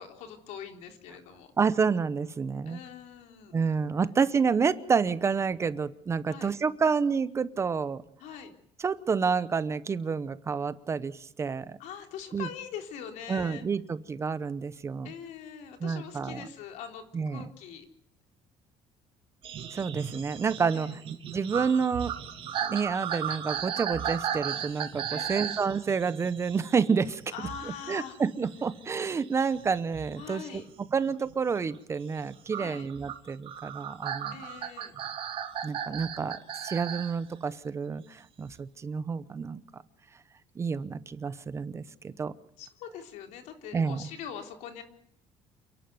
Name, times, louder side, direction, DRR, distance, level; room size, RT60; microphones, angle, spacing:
voice 1, 0.0-1.5 2.7-3.6 6.3-6.5 8.2-8.5 11.8-13.6 15.0-17.9 20.7-21.0 25.1-25.5 27.3-28.2 30.1-30.7 32.6-32.9 34.3-34.9 42.6-44.8, left 8 dB, 80° left, 5 dB, 3.7 m, -43 dB
voice 2, 1.6-2.8 3.5-8.0 8.8-11.8 12.3-12.5 13.3-15.1 15.8-16.5 17.1-17.5 19.7-21.0 21.3-22.2 22.7-27.2 27.9-30.6 30.9-34.4 35.6-39.8 40.6-42.3 43.7-44.1, right 5 dB, 25° right, 16 dB, 0.8 m, -29 dB
sound 1, 19.4-27.7 28.1-30.4 30.9-31.3 32.5-37.1 38.4-38.5, right 9 dB, 50° right, 2.8 m, -36 dB
28.5 x 11.5 x 9.3 m, 0.67 s
cardioid pair, 155°, 12 cm